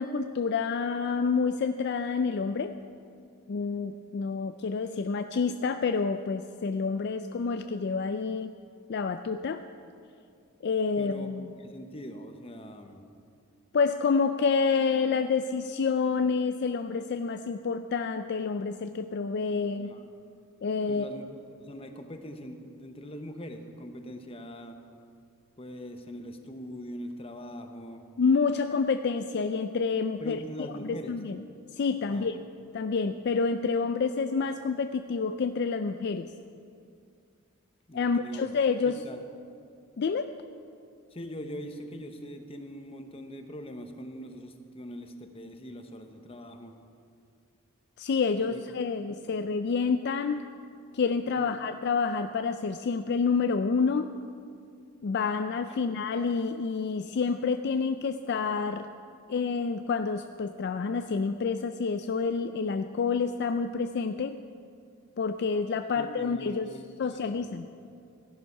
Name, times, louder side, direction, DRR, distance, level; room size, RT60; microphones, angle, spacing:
voice 1, 0.0-2.8 3.5-8.5 8.9-9.6 10.6-11.5 13.7-19.9 20.6-21.1 28.2-30.4 30.8-31.4 31.7-32.4 32.7-36.3 37.9-39.0 40.0-40.3 48.0-50.4 50.9-54.1 55.0-58.9 59.3-64.4 65.2-66.7 67.0-67.9, left 5 dB, 50° left, 9 dB, 0.4 m, -28 dB
voice 2, 11.0-13.0 19.8-20.0 20.9-21.3 21.6-24.8 25.6-28.0 30.2-31.2 32.1-32.3 37.9-38.5 38.8-39.2 41.1-46.8 48.4-48.8 49.2-49.4 51.4-51.6 55.8-55.9 65.9-67.4, equal, 25° left, 6 dB, 0.9 m, -42 dB
14.5 x 11.0 x 5.5 m, 2.4 s
head